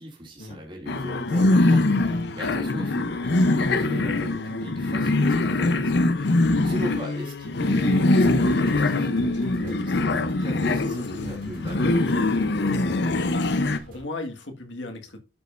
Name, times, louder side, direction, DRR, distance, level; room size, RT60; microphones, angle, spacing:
voice 1, 0.0-12.2, equal, 25° right, 2.6 m, -39 dB
sound 1, 0.9-13.8, left 2 dB, 65° left, 0.7 m, -23 dB
sound 2, 7.8-14.0, right 1 dB, 50° right, 2.8 m, -48 dB
voice 2, 13.3-15.2, left 2 dB, 80° left, 1.7 m, -36 dB
12.0 x 5.3 x 2.5 m
head